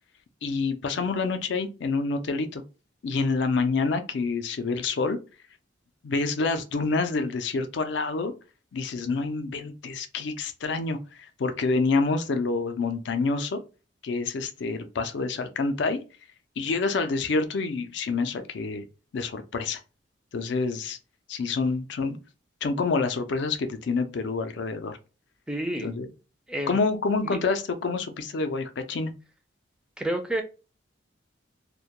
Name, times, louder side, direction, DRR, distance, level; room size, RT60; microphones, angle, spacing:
voice 1, 0.4-2.6 3.0-5.2 6.0-8.3 8.7-13.6 14.0-16.0 16.6-18.9 19.1-19.8 20.3-21.0 21.3-22.2 22.6-25.0 25.8-26.1 26.7-29.1, left 4 dB, 65° left, 0.4 m, -27 dB
voice 2, 25.5-25.9 26.5-26.8 27.2-27.4 30.0-30.4, right 1 dB, 5° right, 0.3 m, -29 dB
2.2 x 2.1 x 2.8 m
head